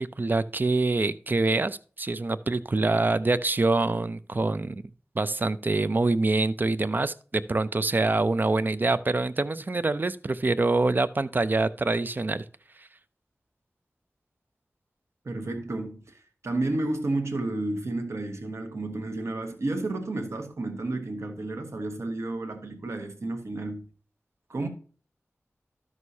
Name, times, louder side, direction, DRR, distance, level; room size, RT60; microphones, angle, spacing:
voice 1, 0.0-4.8 5.2-12.4 12.8-12.9, right 3 dB, 40° right, 0.4 m, -25 dB
voice 2, 15.2-23.9 24.5-24.7, right 2 dB, 80° right, 1.3 m, -31 dB
12.0 x 6.3 x 2.8 m
wide cardioid pair, 80°, 5 cm